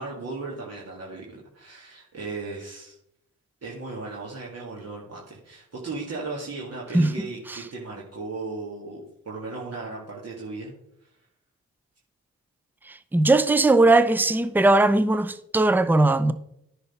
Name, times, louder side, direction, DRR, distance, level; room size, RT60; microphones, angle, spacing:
voice 1, 0.0-3.0 3.6-10.7 11.0-11.1, right 3 dB, 45° right, 2.2 m, -36 dB
voice 2, 13.1-16.3, right 2 dB, 5° right, 0.6 m, -19 dB
10.0 x 4.1 x 5.5 m
supercardioid pair, 45°, 34 cm